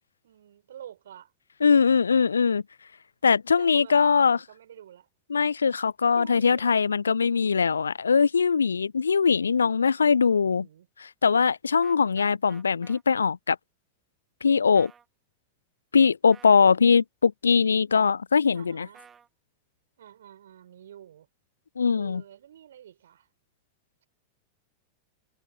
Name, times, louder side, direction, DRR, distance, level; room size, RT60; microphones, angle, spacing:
voice 1, 0.2-1.3 3.6-5.1 6.2-6.8 9.8-10.9 18.5-19.1 20.0-21.3 22.0-23.3, right 10 dB, 60° right, 5.2 m, -48 dB
voice 2, 1.6-2.6 3.2-4.4 5.3-10.7 11.2-13.6 14.4-14.9 15.9-18.9 21.8-22.2, left 5 dB, 75° left, 0.3 m, -21 dB
sound 1, 11.8-13.0 14.7-15.1 16.3-16.6 18.9-19.3, right 7 dB, 20° right, 1.8 m, -52 dB
figure-of-eight pair, 90°, 0 cm